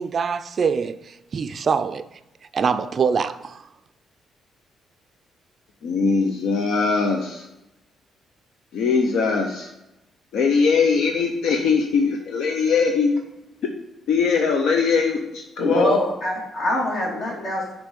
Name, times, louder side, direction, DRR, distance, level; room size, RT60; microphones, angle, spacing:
voice 1, 0.0-2.1 2.5-3.7, right 6 dB, 45° right, 0.3 m, -24 dB
voice 2, 5.8-7.4 8.7-9.7 10.3-13.1 14.1-16.0, left 5 dB, 80° left, 0.6 m, -21 dB
voice 3, 15.6-17.7, left 1 dB, 60° left, 2.2 m, -24 dB
6.8 x 3.1 x 5.2 m
cardioid pair, 90°, 0 cm